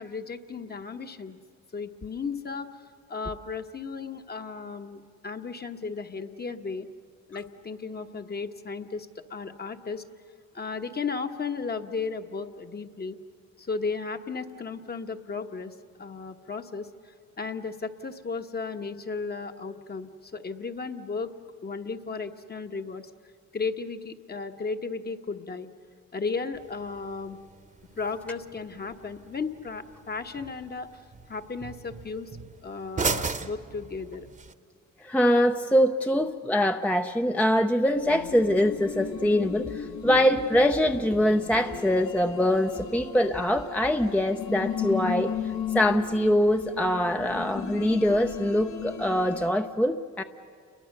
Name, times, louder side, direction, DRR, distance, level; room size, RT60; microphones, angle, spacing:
voice 1, 0.0-1.4 1.7-2.7 3.1-6.9 7.3-10.0 10.5-13.2 13.6-21.3 21.6-23.1 23.5-25.7 26.1-27.4 27.9-30.9 31.3-32.3 32.6-34.3, left 4 dB, 30° left, 6 dB, 1.2 m, -35 dB
sound 1, 26.5-34.5, right 4 dB, 25° right, 1.1 m, -37 dB
voice 2, 35.0-45.3 45.7-50.2, equal, 5° left, 6 dB, 0.6 m, -23 dB
sound 2, 37.9-49.5, left 7 dB, 70° left, 1.9 m, -35 dB
29.5 x 22.0 x 6.7 m, 2.1 s
cardioid pair, 90°, 30 cm